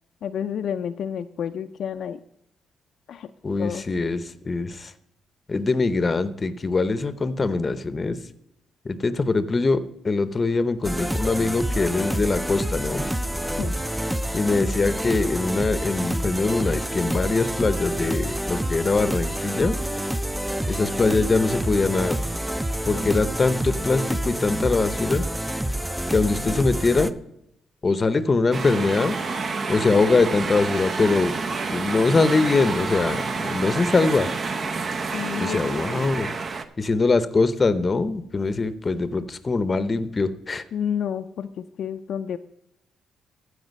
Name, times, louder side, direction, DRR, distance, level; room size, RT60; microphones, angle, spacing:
voice 1, 0.2-2.2 3.1-3.3 3.6-3.8 13.6-13.7 35.1-35.6 40.7-42.4, left 8 dB, 65° left, 8 dB, 0.4 m, -29 dB
voice 2, 3.4-4.9 5.5-8.2 8.8-13.0 14.3-19.8 20.7-22.2 22.9-25.2 26.1-27.1 27.8-29.2 29.7-31.4 31.7-34.3 35.4-36.3 36.8-40.6, left 3 dB, 30° left, 14 dB, 0.7 m, -22 dB
sound 1, 10.8-27.1, right 1 dB, 5° right, 0.5 m, -28 dB
sound 2, 28.5-36.6, right 4 dB, 45° right, 0.7 m, -28 dB
14.0 x 4.9 x 5.3 m, 0.79 s
cardioid pair, 90°, 0 cm